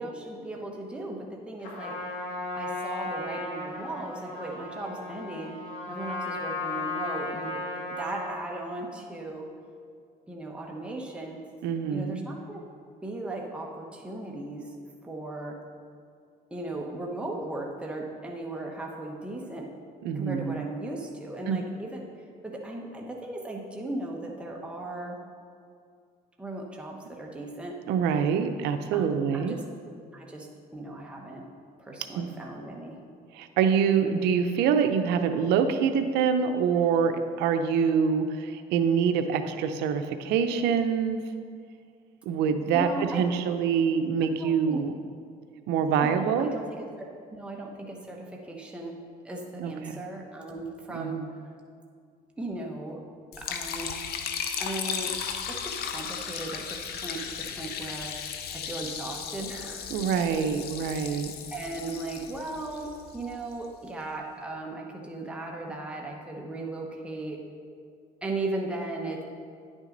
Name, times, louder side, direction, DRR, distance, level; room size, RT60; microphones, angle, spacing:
voice 1, 0.0-1.9 2.5-5.5 5.9-7.6 8.0-9.5 10.3-11.4 11.9-12.6 13.0-14.7 15.0-15.6 16.5-19.7 20.1-22.0 22.4-25.2 26.4-27.8 28.9-29.6 30.1-31.5 31.8-33.0 42.7-43.6 44.2-44.8 46.0-46.9 47.3-49.0 49.2-51.2 52.4-53.0 53.4-53.9 54.6-55.2 55.5-58.1 58.5-59.9 61.0-61.2 61.5-67.4 68.2-69.2, right 2 dB, 5° right, -1 dB, 1.0 m, -37 dB
Trumpet, 1.6-8.4, left 2 dB, 90° left, 2.0 m, -35 dB
voice 2, 11.6-12.2 20.0-20.6 21.5-21.6 27.9-29.6 32.1-32.3 33.3-41.2 42.3-44.9 45.7-46.5 49.6-50.0 50.9-51.3 59.9-61.3, right 7 dB, 90° right, 8 dB, 0.5 m, -25 dB
Liquid, 53.3-63.5, left 7 dB, 70° left, 0.7 m, -36 dB
10.0 x 6.2 x 3.9 m, 2.2 s
cardioid pair, 110°, 17 cm